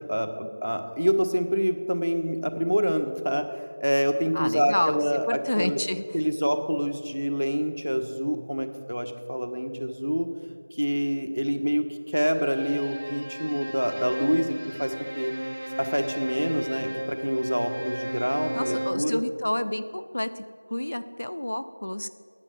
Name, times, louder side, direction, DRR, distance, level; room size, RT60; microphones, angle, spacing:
voice 1, 0.0-3.4 3.8-5.8 6.1-10.3 10.7-15.3 15.8-19.2, equal, 80° right, 6 dB, 1.3 m, -26 dB
voice 2, 4.3-5.0 5.3-6.0 18.5-22.1, left 1 dB, 25° left, 12 dB, 0.3 m, -29 dB
Bowed string instrument, 12.3-19.1, right 1 dB, 30° right, 0.5 m, -36 dB
9.7 x 9.3 x 7.7 m, 2.2 s
figure-of-eight pair, 180°, 0 cm